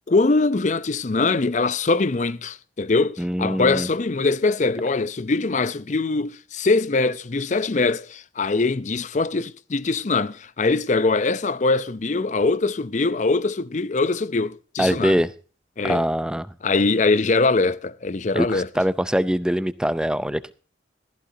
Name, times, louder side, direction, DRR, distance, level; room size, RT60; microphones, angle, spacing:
voice 1, 0.0-15.2 15.8-16.0 16.6-18.7, left 3 dB, 40° left, 0.5 m, -22 dB
voice 2, 3.2-3.9 14.8-15.3 15.8-16.5 18.3-20.5, equal, 5° right, 0.5 m, -23 dB
15.0 x 14.0 x 2.7 m
head